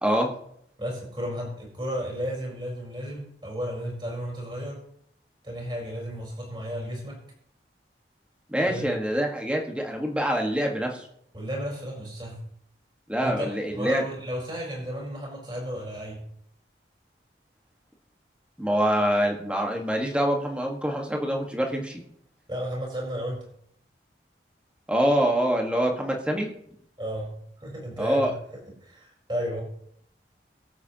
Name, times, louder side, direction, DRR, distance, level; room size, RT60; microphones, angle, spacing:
voice 1, 0.8-4.8 5.4-7.2 8.7-8.9 11.3-12.4 13.2-16.2 22.5-23.5 27.0-27.3 27.6-28.3 28.8-29.6, equal, 25° right, -2 dB, 4.3 m, -33 dB
voice 2, 8.5-11.1 13.1-14.0 18.6-22.0 24.9-26.5 28.0-28.3, equal, 5° right, 1 dB, 1.5 m, -25 dB
23.0 x 8.1 x 2.9 m, 0.70 s
head